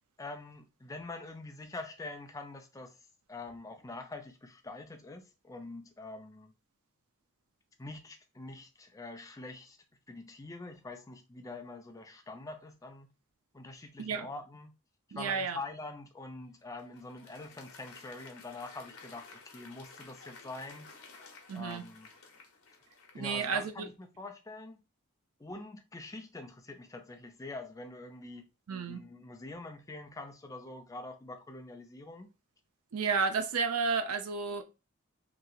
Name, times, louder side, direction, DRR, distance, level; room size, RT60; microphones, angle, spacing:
voice 1, 0.2-3.0 3.3-6.5 7.8-9.8 10.1-13.1 13.5-14.7 15.1-20.9 21.5-22.1 23.1-24.8 25.4-28.5 28.8-32.3, left 2 dB, 15° left, 0.4 m, -45 dB
voice 2, 15.1-15.6 21.5-21.8 23.1-23.9 28.7-29.0 32.9-34.6, right 5 dB, 75° right, 0.5 m, -32 dB
Applause, 16.4-24.0, left 4 dB, 75° left, 0.8 m, -54 dB
3.0 x 2.7 x 2.3 m
head